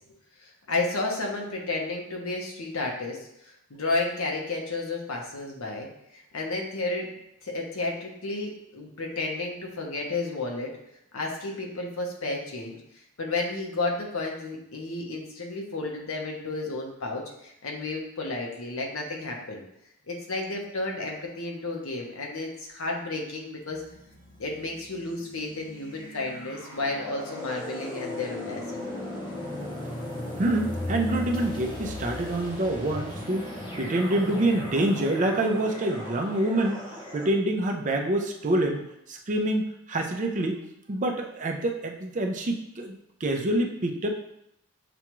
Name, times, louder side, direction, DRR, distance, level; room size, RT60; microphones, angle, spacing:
voice 1, 0.4-5.9 6.3-7.1 7.4-10.7 11.1-12.8 13.2-19.6 20.1-23.8 24.4-28.6 28.9-29.0, left 2 dB, 65° left, 0 dB, 0.9 m, -32 dB
sound 1, 23.7-37.3, left 1 dB, 20° left, 0.6 m, -37 dB
voice 2, 30.4-36.8 37.1-40.6 40.9-44.1, right 1 dB, 35° right, 2 dB, 0.5 m, -26 dB
6.8 x 2.3 x 3.0 m, 0.78 s
head